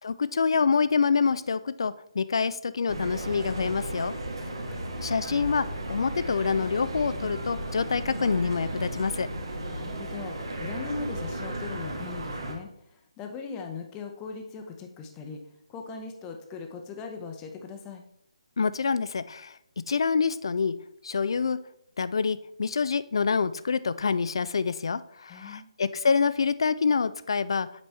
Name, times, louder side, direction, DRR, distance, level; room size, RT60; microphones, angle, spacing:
voice 1, 0.0-4.1 5.0-9.3 18.6-19.5 19.9-20.7 21.0-21.6 22.0-27.7, left 5 dB, 50° left, 15 dB, 0.4 m, -26 dB
sound 1, 2.9-12.5, right 1 dB, 50° right, 1.4 m, -34 dB
voice 2, 4.5-4.9 9.7-15.4 15.7-18.0 25.3-25.7, left 5 dB, 15° left, 4 dB, 0.7 m, -39 dB
7.9 x 5.3 x 3.4 m, 0.76 s
figure-of-eight pair, 145°, 3 cm